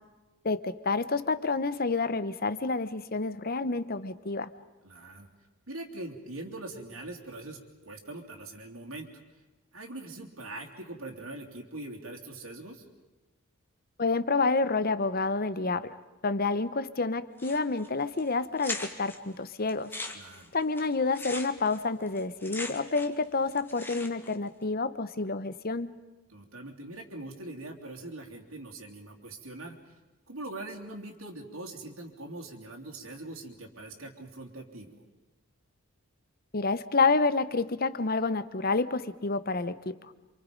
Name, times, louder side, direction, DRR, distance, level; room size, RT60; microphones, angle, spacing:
voice 1, 0.4-4.5 14.0-16.0 16.2-19.9 20.5-26.0 36.5-40.0, left 3 dB, 40° left, 14 dB, 0.9 m, -29 dB
voice 2, 4.8-5.3 5.7-9.1 9.7-12.8 20.1-20.5 26.3-29.8 30.3-35.0, right 2 dB, 70° right, 0 dB, 3.1 m, -42 dB
sound 1, 17.4-17.9 18.2-18.3 18.6-19.2 19.7-23.2 23.5-24.3, left 2 dB, 10° left, 1.7 m, -39 dB
28.5 x 26.5 x 5.3 m, 1.1 s
head